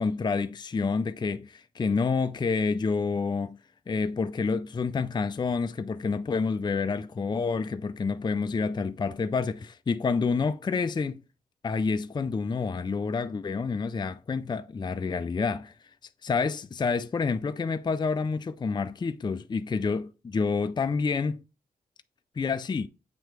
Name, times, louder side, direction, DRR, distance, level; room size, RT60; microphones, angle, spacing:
voice 1, 0.0-3.6 3.9-11.2 11.6-15.7 16.2-21.4 22.4-22.9, left 4 dB, 30° left, 0.4 m, -28 dB
7.6 x 3.1 x 4.6 m
cardioid pair, 50°, 15 cm